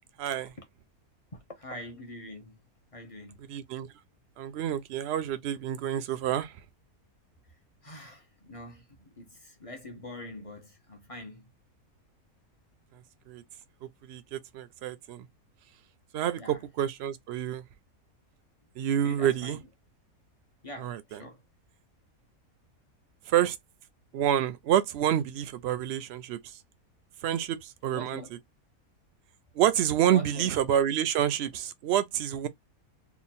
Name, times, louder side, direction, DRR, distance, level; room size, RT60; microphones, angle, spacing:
voice 1, 0.2-0.5 3.5-3.9 4.4-6.5 13.3-13.4 14.0-15.3 16.1-17.6 18.8-19.6 20.8-21.2 23.3-23.6 24.1-26.4 27.2-28.2 29.5-32.5, right 10 dB, 65° right, 0.6 m, -28 dB
voice 2, 1.3-2.6 2.9-3.4 7.8-11.5 16.4-16.6 19.0-19.6 20.6-21.4 27.9-28.4 30.1-30.5, left 1 dB, 40° left, 0.5 m, -44 dB
3.0 x 2.3 x 4.1 m
omnidirectional pair, 1.6 m